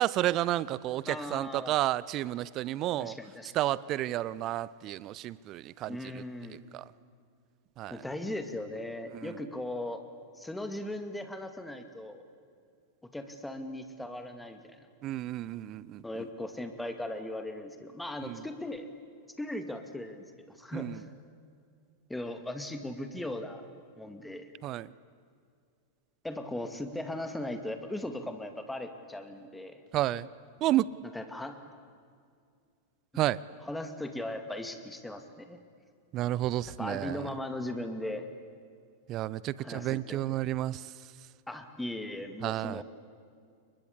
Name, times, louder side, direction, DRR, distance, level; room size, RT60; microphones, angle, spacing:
voice 1, 0.0-3.2 3.5-6.0 6.7-6.8 7.8-8.0 9.2-9.3 15.0-16.0 18.2-18.4 20.7-21.0 24.6-24.9 29.9-30.3 30.6-30.9 33.2-33.4 36.1-37.3 39.1-40.9 42.4-42.8, right 14 dB, 35° right, 21 dB, 0.6 m, -31 dB
voice 2, 1.1-1.7 3.0-3.6 5.9-6.6 7.9-10.0 10.3-12.2 13.1-14.9 16.0-18.9 19.4-21.1 22.1-23.6 24.0-24.5 26.2-29.8 31.0-31.7 33.6-35.6 36.8-38.3 39.6-40.4 41.5-42.8, left 1 dB, 5° left, 7 dB, 2.2 m, -38 dB
29.5 x 23.5 x 8.6 m, 2.2 s
figure-of-eight pair, 90°, 0 cm